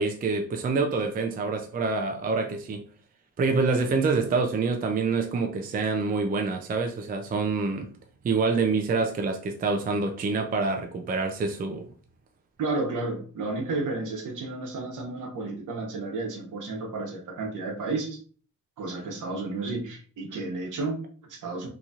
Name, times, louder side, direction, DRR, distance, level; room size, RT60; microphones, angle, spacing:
voice 1, 0.0-2.8 3.4-7.9 8.2-11.9, right 4 dB, 30° right, 0.4 m, -26 dB
voice 2, 12.6-18.2 18.8-21.7, right 3 dB, 65° right, 1.0 m, -32 dB
4.0 x 3.0 x 2.4 m
wide cardioid pair, 145°, 33 cm